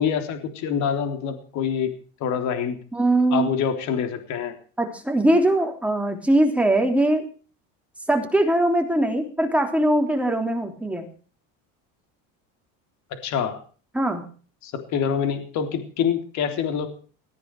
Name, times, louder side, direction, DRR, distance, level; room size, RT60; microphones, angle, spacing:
voice 1, 0.0-1.9 2.2-2.8 3.3-4.5 13.1-13.6 14.6-16.9, left 7 dB, 55° left, 7 dB, 3.6 m, -26 dB
voice 2, 2.9-3.5 4.8-7.3 8.1-11.1 13.9-14.2, right 1 dB, 5° right, 4 dB, 3.3 m, -21 dB
19.0 x 14.5 x 4.8 m, 0.40 s
cardioid pair, 150°, 34 cm